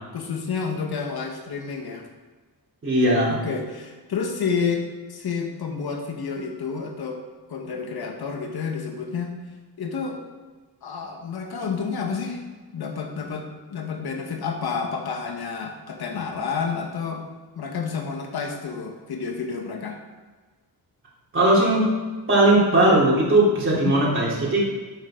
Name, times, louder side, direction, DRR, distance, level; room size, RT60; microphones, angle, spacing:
voice 1, 0.1-2.1 3.3-7.2 7.5-9.3 9.8-10.2 10.8-12.4 12.7-17.2 17.5-20.0 23.8-24.0, left 5 dB, 65° left, 4 dB, 1.7 m, -30 dB
voice 2, 2.8-3.4 21.3-21.9 22.3-24.6, right 1 dB, 30° right, -6 dB, 3.7 m, -18 dB
12.0 x 9.1 x 4.0 m, 1.4 s
wide cardioid pair, 160°, 40 cm